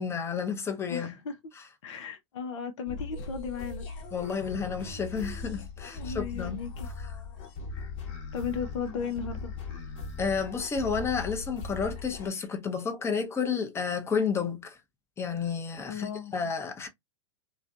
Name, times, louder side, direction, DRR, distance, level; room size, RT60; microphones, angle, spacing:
voice 1, 0.0-1.1 4.1-6.6 7.0-7.1 10.2-14.8 15.2-16.9, left 6 dB, 15° left, 0.7 m, -31 dB
voice 2, 0.9-1.4 1.8-3.8 5.9-6.9 8.3-9.5 15.9-16.3, left 6 dB, 75° left, 0.6 m, -35 dB
sound 1, 2.9-12.3, left 4 dB, 45° left, 1.0 m, -39 dB
2.4 x 2.2 x 2.5 m
hypercardioid pair, 120°, 16 cm